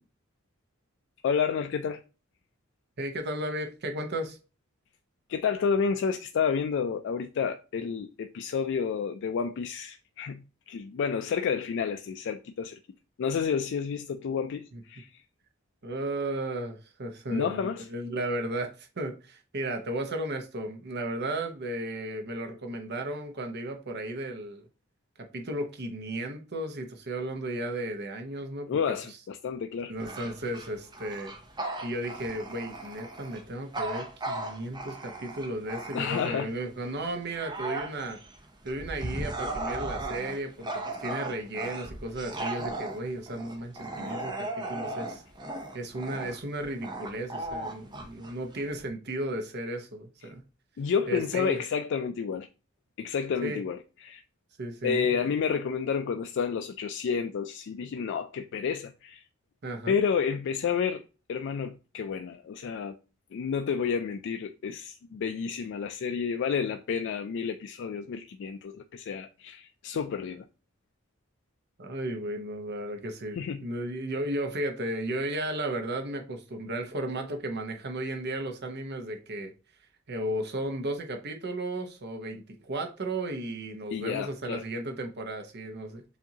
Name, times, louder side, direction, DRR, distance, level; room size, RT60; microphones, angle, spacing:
voice 1, 1.2-2.0 5.3-12.8 13.2-15.2 17.3-17.9 28.7-29.9 35.9-36.5 50.2-50.3 50.8-52.5 53.0-54.2 54.8-59.2 59.9-61.0 61.3-63.0 63.3-70.5 73.4-73.6 83.9-84.6, left 6 dB, 60° left, 0.3 m, -30 dB
voice 2, 3.0-4.4 14.7-14.8 15.8-24.6 25.2-28.8 29.1-29.2 29.9-31.3 31.8-38.2 38.6-45.2 45.7-50.4 51.1-51.6 53.4-53.6 54.6-55.3 59.6-60.0 71.8-79.5 80.1-86.0, right 1 dB, 55° right, 0.9 m, -34 dB
Bark / Growling, 30.0-36.5 37.0-48.9, right 2 dB, 20° right, 0.7 m, -37 dB
7.1 x 2.6 x 2.8 m
head